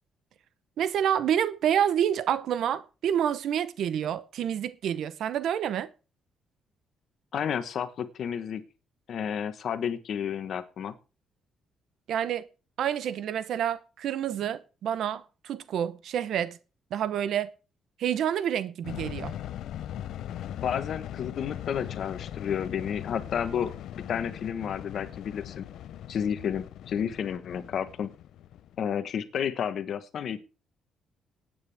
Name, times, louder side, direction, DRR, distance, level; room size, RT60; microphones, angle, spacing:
voice 1, 0.8-5.9 12.1-12.4 12.8-16.6 16.9-17.5 18.0-19.3, right 9 dB, 75° right, 0.8 m, -28 dB
voice 2, 7.3-8.6 9.1-10.9 20.6-25.7 26.1-28.1 28.8-30.4, left 8 dB, 65° left, 1.1 m, -31 dB
sound 1, 18.8-29.1, left 11 dB, 80° left, 0.6 m, -40 dB
18.0 x 9.0 x 3.5 m
cardioid pair, 90°, 0 cm